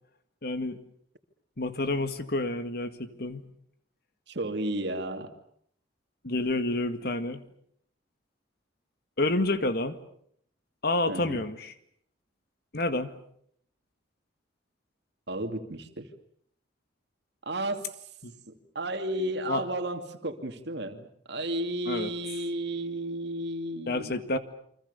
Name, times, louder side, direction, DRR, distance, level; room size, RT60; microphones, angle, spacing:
voice 1, 0.4-0.8 1.6-3.4 6.2-7.4 9.2-10.0 10.8-11.7 12.7-13.1 18.2-18.3 19.5-19.6 21.9-22.1 23.9-24.4, left 2 dB, 55° left, 10 dB, 1.9 m, -29 dB
voice 2, 4.3-5.3 11.1-11.4 15.3-16.1 17.5-17.9 18.5-24.4, right 1 dB, 60° right, 6 dB, 2.5 m, -33 dB
29.5 x 24.5 x 6.9 m, 0.66 s
head